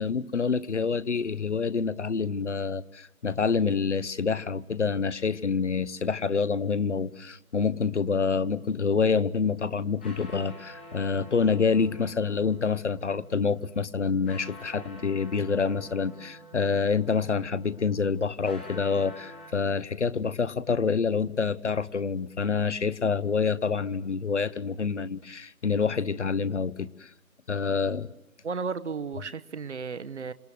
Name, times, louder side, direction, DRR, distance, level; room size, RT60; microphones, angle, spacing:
voice 1, 0.0-27.1 27.5-28.1, left 5 dB, 55° left, 1.0 m, -27 dB
sound 1, 9.7-19.5, equal, 5° left, 1.2 m, -48 dB
voice 2, 28.4-30.3, right 5 dB, 55° right, 1.1 m, -34 dB
28.0 x 27.0 x 7.9 m
figure-of-eight pair, 170°, 43 cm